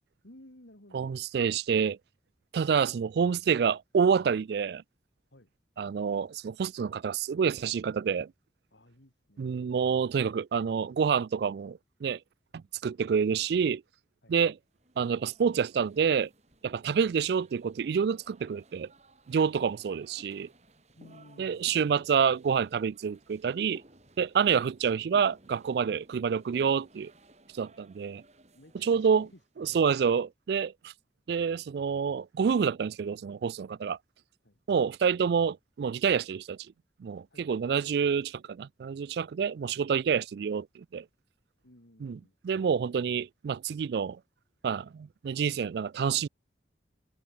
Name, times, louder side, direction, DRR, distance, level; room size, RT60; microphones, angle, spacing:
voice 1, 0.2-1.3 5.3-5.5 8.7-9.6 14.2-14.3 16.7-16.8 19.5-19.6 21.0-21.7 28.5-29.9 34.4-34.6 37.3-37.6 41.6-42.4, left 1 dB, 75° left, 4.2 m, -56 dB
voice 2, 0.9-2.0 2.5-4.8 5.8-8.3 9.4-12.2 12.5-13.8 14.3-14.5 15.0-16.3 16.6-18.9 19.3-20.5 21.4-23.8 24.2-27.1 27.5-28.2 28.8-29.3 29.6-30.9 31.3-34.0 34.7-36.6 37.0-41.1 42.0-44.2 44.6-46.3, right 6 dB, 60° right, 0.3 m, -28 dB
sound 1, 14.8-29.5, right 1 dB, 35° right, 3.6 m, -58 dB
open air
head